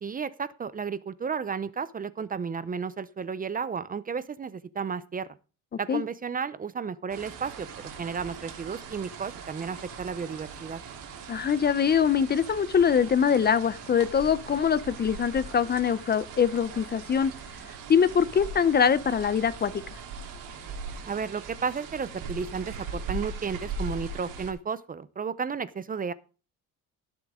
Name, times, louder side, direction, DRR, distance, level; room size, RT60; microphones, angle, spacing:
voice 1, 0.0-5.3 5.8-7.7 8.0-10.8 21.1-26.1, right 6 dB, 25° right, 16 dB, 0.6 m, -33 dB
sound 1, 7.1-24.5, right 4 dB, 75° right, 3.4 m, -40 dB
voice 2, 11.3-17.3 17.9-19.8, left 7 dB, 30° left, 16 dB, 0.7 m, -23 dB
18.0 x 7.6 x 3.7 m, 0.35 s
cardioid pair, 120°, 32 cm